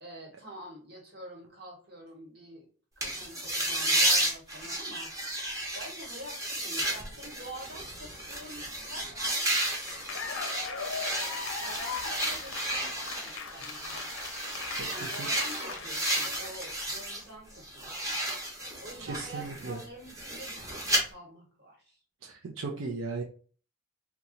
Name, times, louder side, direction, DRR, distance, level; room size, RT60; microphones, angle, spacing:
voice 1, 0.0-2.7 3.0-5.1 5.7-9.4 10.7-14.1 14.9-18.2 18.8-22.0, right 1 dB, 50° right, -1 dB, 1.2 m, -47 dB
sound 1, 3.0-17.2 17.6-21.0, right 1 dB, 15° right, 0.7 m, -32 dB
Cheering / Applause, 9.6-17.1, left 5 dB, 70° left, 0.6 m, -40 dB
voice 2, 14.8-15.3 18.5-18.6 19.0-19.8 22.2-23.2, right 3 dB, 90° right, 0 dB, 0.6 m, -37 dB
2.9 x 2.2 x 3.8 m, 0.40 s
head